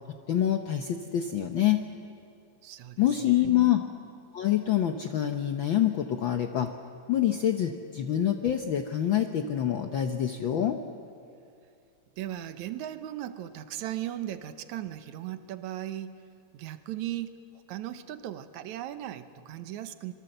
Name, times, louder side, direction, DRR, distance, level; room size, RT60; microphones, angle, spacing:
voice 1, 0.1-1.8 3.0-3.8 4.3-6.7 7.1-10.8, left 11 dB, 85° left, 6 dB, 1.0 m, -26 dB
voice 2, 2.6-3.7 12.2-16.2 16.5-20.1, right 12 dB, 75° right, 11 dB, 2.2 m, -37 dB
26.0 x 22.5 x 7.9 m, 2.4 s
omnidirectional pair, 3.5 m